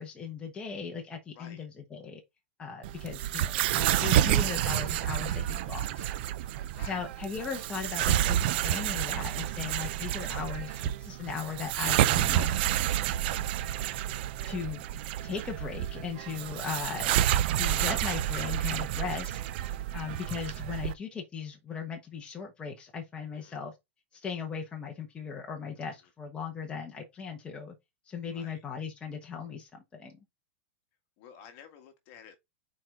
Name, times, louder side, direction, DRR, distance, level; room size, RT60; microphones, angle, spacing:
voice 1, 0.0-2.2 2.6-6.1 6.9-12.6 14.4-14.8 15.2-17.1 17.5-19.4 19.9-23.7 24.1-27.7 28.1-30.2, left 6 dB, 15° left, 1.2 m, -38 dB
sound 1, 2.8-20.9, right 12 dB, 50° right, 0.6 m, -29 dB
voice 2, 28.3-28.6 31.2-32.4, left 8 dB, 40° left, 1.6 m, -51 dB
5.9 x 4.6 x 3.8 m
supercardioid pair, 155°, 7 cm